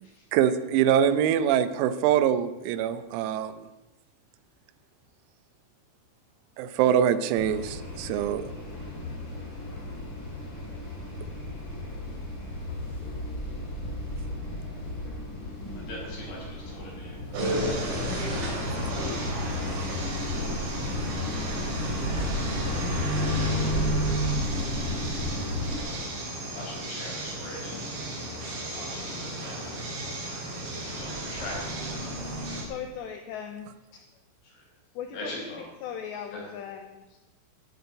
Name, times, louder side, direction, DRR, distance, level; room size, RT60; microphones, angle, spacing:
voice 1, 0.3-3.7 6.6-8.5, right 9 dB, 90° right, 12 dB, 3.7 m, -24 dB
sound 1, 7.4-25.8, left 1 dB, 25° left, 3.8 m, -35 dB
voice 2, 15.7-17.3 17.6-19.4 26.5-27.9 28.2-29.8 30.8-32.3 34.4-34.6 35.1-35.6 36.3-36.5, left 1 dB, 50° left, -3 dB, 7.3 m, -43 dB
sound 2, 17.3-32.6, equal, 60° right, 6.3 m, -31 dB
voice 3, 32.6-34.1 35.0-37.2, left 8 dB, 80° left, 6 dB, 2.7 m, -39 dB
14.0 x 12.5 x 7.8 m, 1.0 s
omnidirectional pair, 6.0 m